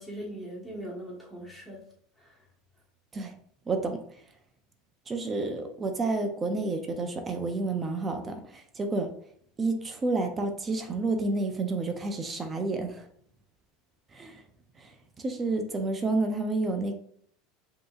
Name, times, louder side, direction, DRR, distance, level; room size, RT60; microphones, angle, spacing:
voice 1, 0.0-1.8 2.2-2.4, right 1 dB, ahead, -5 dB, 1.3 m, -40 dB
voice 2, 3.7-4.0 5.1-9.1 9.6-13.0 14.1-14.3 14.8-14.9 15.2-16.9, right 3 dB, 15° right, 5 dB, 0.4 m, -30 dB
5.2 x 2.8 x 2.4 m, 0.62 s
supercardioid pair, 160°, 0 cm